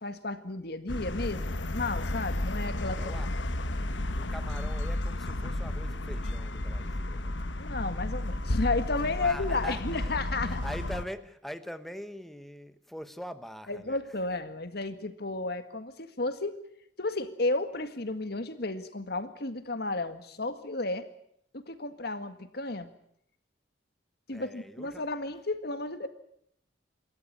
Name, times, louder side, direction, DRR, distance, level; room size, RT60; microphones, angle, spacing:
voice 1, 0.0-3.3 7.6-10.6 13.7-16.6 17.0-21.1 21.5-22.9 24.3-26.1, left 2 dB, 60° left, 10 dB, 1.9 m, -33 dB
sound 1, 0.9-11.0, left 1 dB, 85° left, 1.3 m, -32 dB
voice 2, 2.9-3.3 4.2-7.3 9.2-10.2 10.4-14.0 24.3-25.0, equal, ahead, 10 dB, 1.0 m, -43 dB
27.5 x 13.5 x 9.7 m, 0.71 s
head